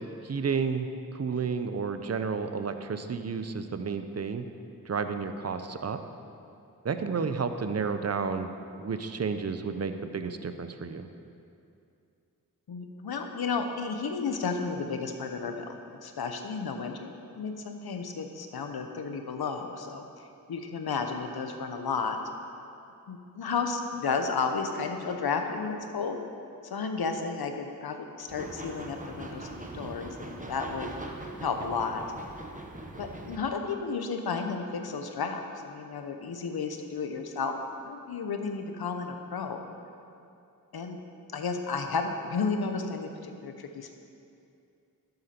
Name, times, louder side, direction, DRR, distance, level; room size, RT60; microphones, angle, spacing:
voice 1, 0.2-4.4 4.9-6.0 6.8-8.5 8.8-11.1, right 5 dB, 45° right, 8 dB, 0.7 m, -31 dB
voice 2, 12.7-20.1 20.5-22.2 23.1-26.2 26.6-30.9 31.4-32.0 33.0-37.6 37.8-39.6 40.7-41.0 41.3-43.9, left 5 dB, 85° left, 5 dB, 0.9 m, -33 dB
sound 1, 28.3-33.4, right 2 dB, 20° right, 1.1 m, -41 dB
12.0 x 8.0 x 4.4 m, 2.6 s
cardioid pair, 65°, 36 cm